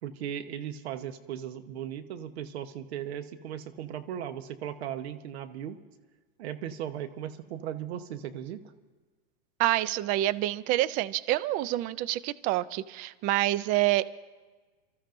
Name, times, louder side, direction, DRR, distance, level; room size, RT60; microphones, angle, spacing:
voice 1, 0.0-5.8 6.4-8.6, right 10 dB, 70° right, 11 dB, 1.1 m, -37 dB
voice 2, 9.6-14.1, right 15 dB, 25° right, 17 dB, 0.3 m, -27 dB
29.5 x 13.5 x 2.6 m, 1.3 s
hypercardioid pair, 130°, 33 cm